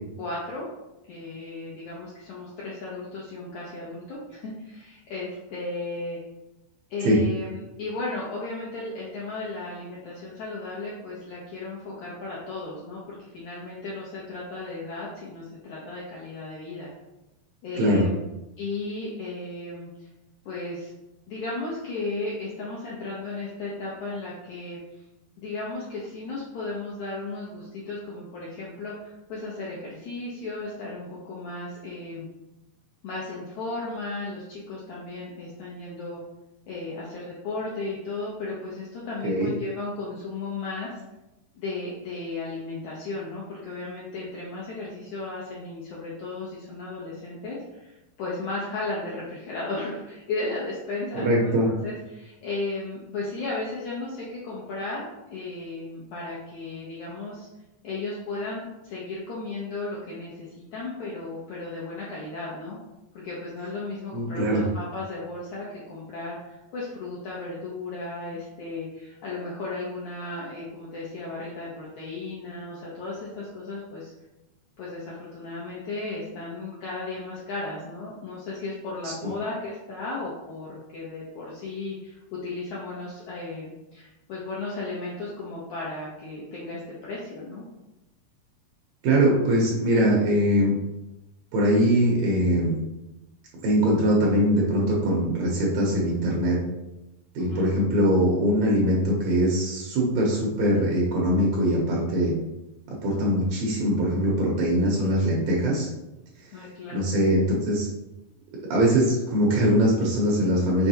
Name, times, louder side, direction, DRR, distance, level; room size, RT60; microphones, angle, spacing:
voice 1, 0.2-0.7 1.0-6.2 6.9-16.9 17.6-18.3 18.6-20.1 20.5-20.9 21.3-24.8 25.4-32.3 33.0-36.2 36.7-41.0 41.5-57.5 57.8-62.8 63.1-74.1 74.8-87.6 97.4-97.7 106.5-107.0, left 3 dB, 75° left, -6 dB, 1.8 m, -35 dB
voice 2, 51.1-51.7 64.1-64.7 79.0-79.3 89.0-90.7 91.5-92.7 93.6-96.6 97.3-102.3 103.0-105.9 106.9-107.9 108.7-110.9, equal, 85° right, -3 dB, 1.6 m, -22 dB
5.7 x 3.3 x 2.7 m, 0.98 s
omnidirectional pair, 4.2 m